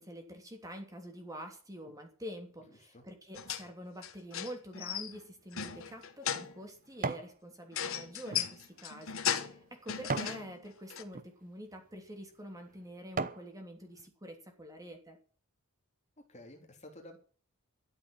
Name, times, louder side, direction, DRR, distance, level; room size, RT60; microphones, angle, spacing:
voice 1, 0.0-15.2, equal, 15° right, 4 dB, 3.0 m, -47 dB
sound 1, 3.3-3.7 4.0-5.2 5.5-6.6 7.7-9.6 9.9-10.5 10.9-11.0, left 8 dB, 65° left, 1.4 m, -36 dB
sound 2, 5.5-7.4 7.8-10.4 11.0-11.3 12.0-12.1 12.6-13.5 14.0-14.1, right 4 dB, 40° right, 0.9 m, -40 dB
voice 2, 16.2-17.2, left 1 dB, 30° left, 3 dB, 3.2 m, -52 dB
13.5 x 7.8 x 8.9 m, 0.41 s
head